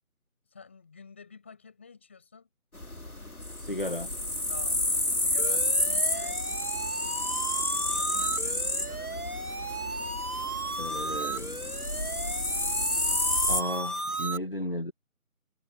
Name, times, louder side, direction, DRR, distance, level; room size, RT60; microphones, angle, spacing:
voice 1, 0.5-2.5 4.5-6.7 7.9-9.3, left 5 dB, 10° left, 7.1 m, -49 dB
sound 1, 2.7-13.6, left 1 dB, 80° left, 4.8 m, -30 dB
voice 2, 3.6-4.1 10.8-11.6 13.5-14.9, left 1 dB, 40° left, 1.7 m, -34 dB
sound 2, 5.4-14.4, right 2 dB, 80° right, 2.4 m, -35 dB
figure-of-eight pair, 175°, 43 cm